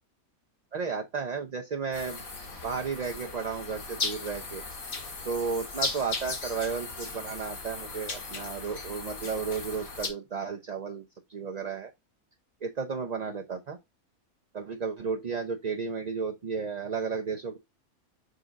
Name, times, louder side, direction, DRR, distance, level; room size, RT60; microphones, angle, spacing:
voice 1, 0.7-2.2 2.6-4.6 5.2-11.0 11.3-11.9 12.6-13.8 14.5-17.6, right 5 dB, 40° right, 0.6 m, -33 dB
sound 1, 1.9-10.1, left 3 dB, 70° left, 2.1 m, -37 dB
6.6 x 3.8 x 3.9 m
omnidirectional pair, 1.5 m